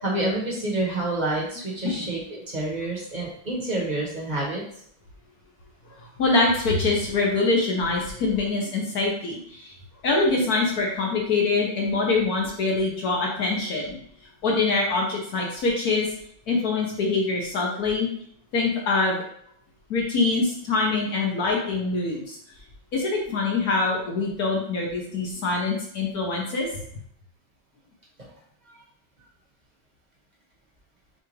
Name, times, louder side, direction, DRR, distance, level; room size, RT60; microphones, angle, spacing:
voice 1, 0.0-4.6 28.7-28.8, right 2 dB, 25° right, -4 dB, 1.0 m, -28 dB
voice 2, 6.0-9.7 10.0-14.0 14.4-16.1 16.5-18.1 18.5-19.2 19.9-22.4 22.9-26.7, left 3 dB, 60° left, -1 dB, 1.2 m, -24 dB
6.7 x 2.5 x 3.2 m, 0.66 s
omnidirectional pair, 2.1 m